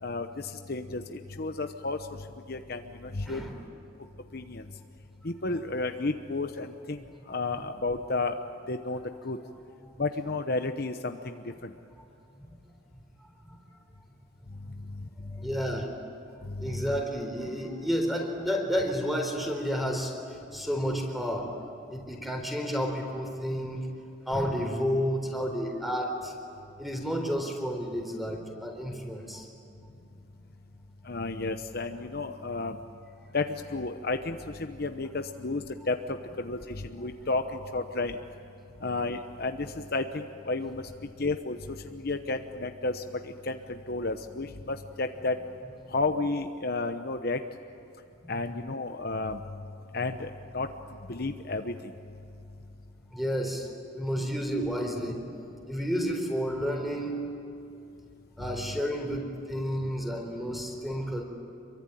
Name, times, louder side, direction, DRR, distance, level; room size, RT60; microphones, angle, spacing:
voice 1, 0.0-3.4 4.3-4.6 5.2-8.3 8.7-9.4 10.0-11.7 14.9-15.1 16.5-16.9 31.0-32.8 33.3-38.2 38.8-40.8 41.2-45.4 45.9-47.4 48.3-49.4 49.9-50.7 51.1-51.9 58.5-58.7, left 3 dB, 50° left, 7 dB, 1.0 m, -32 dB
voice 2, 3.3-3.6 13.4-13.6 15.3-15.9 16.6-20.1 20.5-21.5 21.9-23.9 24.3-26.3 26.8-29.5 48.2-48.3 49.8-49.9 53.1-57.2 58.4-61.2, equal, ahead, 2 dB, 4.0 m, -31 dB
27.0 x 23.5 x 9.2 m, 2.7 s
head